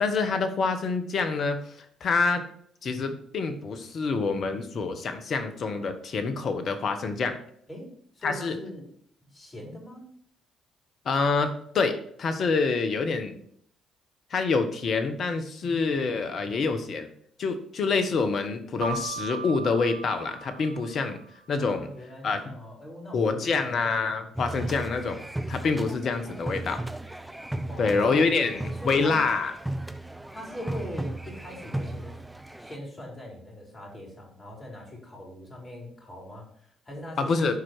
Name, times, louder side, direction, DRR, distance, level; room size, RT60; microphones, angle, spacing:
voice 1, 0.0-1.7 2.0-2.4 2.8-7.4 8.2-8.6 11.0-13.4 14.3-17.1 17.4-21.2 21.5-21.9 22.2-22.5 23.1-25.2 25.5-26.8 27.8-29.5 37.2-37.5, left 4 dB, 55° left, 8 dB, 1.2 m, -26 dB
voice 2, 8.1-8.9 9.2-10.0 21.6-23.9 27.7-29.2 30.3-32.2 32.6-37.5, left 1 dB, 30° left, -1 dB, 3.9 m, -41 dB
Keyboard (musical), 18.8-21.4, right 5 dB, 65° right, 1.2 m, -38 dB
sound 1, 24.3-32.8, right 1 dB, 10° right, 0.8 m, -36 dB
11.0 x 4.6 x 4.5 m, 0.65 s
hypercardioid pair, 50°, 0 cm